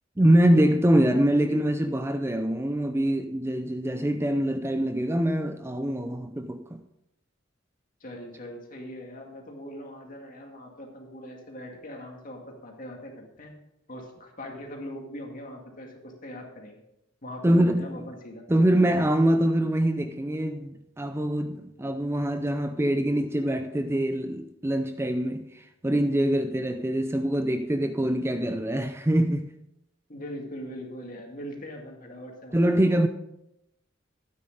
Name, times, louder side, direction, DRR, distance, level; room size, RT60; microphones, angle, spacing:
voice 1, 0.2-6.8 17.4-18.1 18.5-29.5 32.5-33.1, right 1 dB, 15° right, 0.5 m, -24 dB
voice 2, 8.0-13.6 13.9-16.8 17.2-18.4 30.1-32.7, equal, 45° left, 2.2 m, -41 dB
12.5 x 9.2 x 4.0 m
head